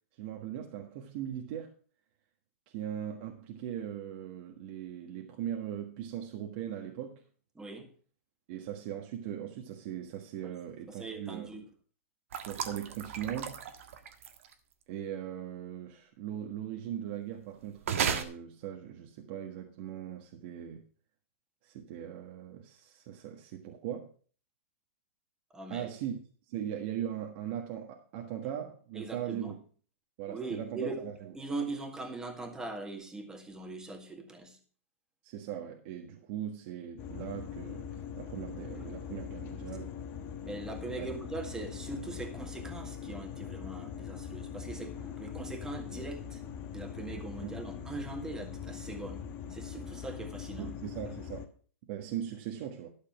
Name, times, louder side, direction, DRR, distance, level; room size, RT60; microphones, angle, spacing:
voice 1, 0.2-1.7 2.7-7.2 8.5-11.5 12.3-13.6 14.9-20.8 21.6-24.1 25.7-26.2 26.5-29.6 30.2-31.1 35.2-40.0 41.0-41.1 47.4-47.5 50.6-51.5 51.9-52.9, right 10 dB, 50° right, 1.5 m, -39 dB
voice 2, 7.6-7.9 10.4-10.5 10.9-11.7 25.5-25.9 28.9-29.5 30.3-31.1 31.3-34.6 38.9-39.0 40.4-46.4 46.7-50.7, right 3 dB, 10° right, 1.9 m, -41 dB
sound 1, 12.3-14.5 17.8-18.2, right 7 dB, 75° right, 1.6 m, -34 dB
sound 2, 37.0-51.5, left 8 dB, 35° left, 1.3 m, -42 dB
12.5 x 6.7 x 5.9 m
hypercardioid pair, 140°, 7 cm